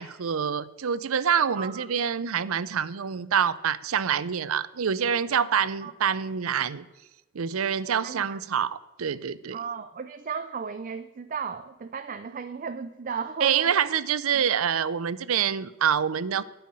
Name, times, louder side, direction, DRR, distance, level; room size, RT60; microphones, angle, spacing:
voice 1, 0.0-6.9 7.3-9.6 13.4-16.4, right 7 dB, 85° right, 17 dB, 0.5 m, -26 dB
voice 2, 1.6-1.9 5.8-5.9 8.0-8.4 9.5-14.0 14.3-14.4, right 6 dB, 40° right, 10 dB, 0.5 m, -35 dB
11.5 x 5.7 x 8.9 m, 1.1 s
head